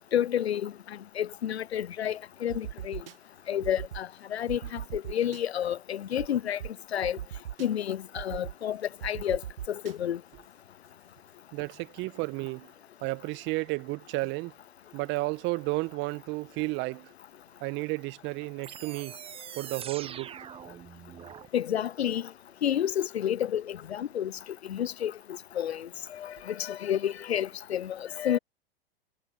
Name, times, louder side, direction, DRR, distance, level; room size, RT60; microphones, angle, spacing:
voice 1, 0.1-3.0 3.5-6.6 6.9-7.2 7.6-9.4 9.7-10.2 21.5-22.3 22.6-24.3 24.7-25.1 25.5-28.4, left 10 dB, 85° left, 0.5 m, -30 dB
sound 1, 2.5-3.1 3.6-4.0 4.5-5.4 6.2-6.3 6.6-6.7 7.0-7.7 8.2-8.5 9.0-9.9, right 11 dB, 65° right, 2.3 m, -38 dB
voice 2, 11.5-12.7 13.0-14.5 14.9-17.1 17.6-19.2 19.6-20.3, right 24 dB, 35° right, 1.4 m, -32 dB
sound 2, 18.6-21.5, right 9 dB, 20° right, 0.9 m, -43 dB
hypercardioid pair, 105°, 31 cm